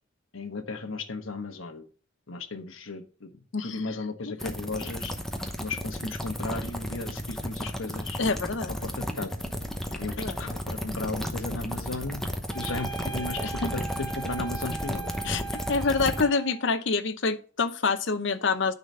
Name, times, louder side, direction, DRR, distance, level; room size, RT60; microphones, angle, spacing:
voice 1, 0.3-1.9 2.3-3.3 3.6-5.1 5.6-8.2 8.8-9.5 10.0-12.2 12.5-15.5, left 3 dB, 80° left, 7 dB, 1.1 m, -35 dB
voice 2, 3.5-3.9 4.4-4.5 8.2-8.7 9.9-10.4 13.4-13.7 15.2-18.7, left 4 dB, 60° left, 12 dB, 0.7 m, -27 dB
sound 1, 4.4-16.2, equal, ahead, 0.9 m, -33 dB
sound 2, 12.5-16.7, right 5 dB, 25° left, 3.7 m, -39 dB
9.6 x 4.1 x 5.4 m, 0.39 s
head